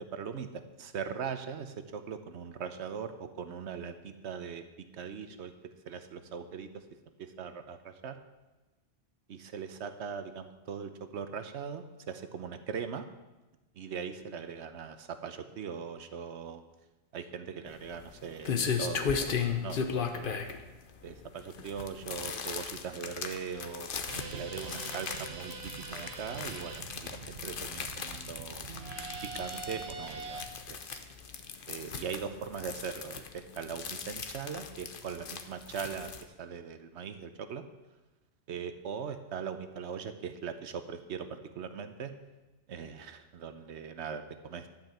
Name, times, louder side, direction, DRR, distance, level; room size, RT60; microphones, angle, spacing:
voice 1, 0.0-4.6 4.9-5.5 5.8-6.9 7.2-8.1 9.3-13.1 13.8-16.6 17.1-20.5 21.0-23.9 24.3-28.7 29.2-30.4 30.7-31.0 31.7-37.6 38.5-42.1 42.7-44.7, right 6 dB, 85° right, 9 dB, 1.1 m, -40 dB
sound 1, 17.7-36.2, left 6 dB, 55° left, 0.9 m, -37 dB
sound 2, 24.1-30.5, right 4 dB, 70° right, 1.2 m, -43 dB
11.5 x 5.3 x 7.6 m, 1.1 s
omnidirectional pair, 1.1 m